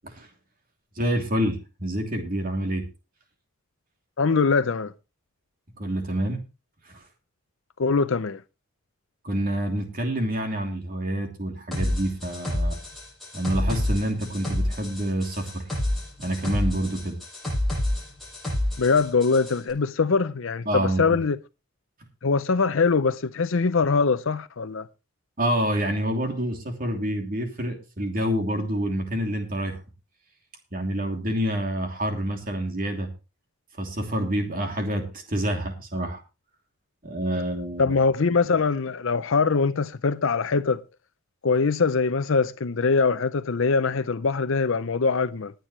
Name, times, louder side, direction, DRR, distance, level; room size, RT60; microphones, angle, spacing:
voice 1, 1.0-2.8 5.8-6.4 6.9-7.0 9.2-12.8 13.3-15.6 16.2-17.2 20.7-21.1 25.4-29.8 30.7-33.1 33.8-36.2 37.0-37.9, equal, 40° right, 3.0 m, -27 dB
voice 2, 4.2-4.9 7.8-8.4 18.8-21.4 22.2-24.9 37.8-40.8 41.4-45.5, left 4 dB, 60° left, 0.6 m, -23 dB
sound 1, 11.7-19.6, left 1 dB, ahead, 7.8 m, -28 dB
20.0 x 9.1 x 3.2 m
head